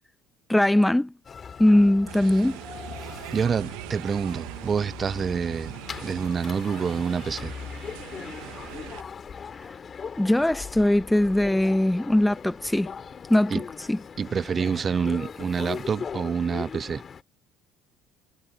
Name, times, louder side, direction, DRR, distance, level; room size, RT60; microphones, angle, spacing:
voice 1, 0.5-1.1 1.6-2.6 10.2-12.9 13.3-13.6 13.9-14.0, left 1 dB, 5° left, 1.0 m, -21 dB
sound 1, 1.2-17.2, left 6 dB, 35° left, 2.2 m, -40 dB
sound 2, 2.1-9.0, right 20 dB, 80° right, 1.0 m, -41 dB
voice 2, 3.3-5.7 6.0-7.5 13.5-13.6 14.2-17.0, right 6 dB, 35° right, 0.4 m, -27 dB
supercardioid pair, 85°, 0 cm